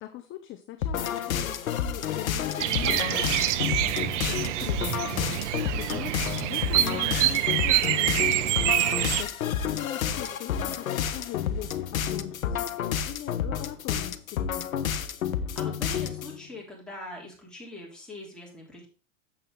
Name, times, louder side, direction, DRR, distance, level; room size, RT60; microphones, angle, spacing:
voice 1, 0.0-5.4 5.8-6.1 6.4-8.4 9.2-14.9, left 13 dB, 30° left, 9 dB, 0.6 m, -41 dB
sound 1, 0.8-16.3, left 8 dB, 90° left, 0.7 m, -30 dB
Bird vocalization bird call bird song, 2.6-9.2, right 14 dB, 65° right, 0.6 m, -26 dB
voice 2, 5.7-6.1 8.8-9.1 15.5-18.9, left 2 dB, ahead, -4 dB, 3.2 m, -42 dB
7.1 x 6.8 x 3.6 m, 0.35 s
hypercardioid pair, 100°, 40 cm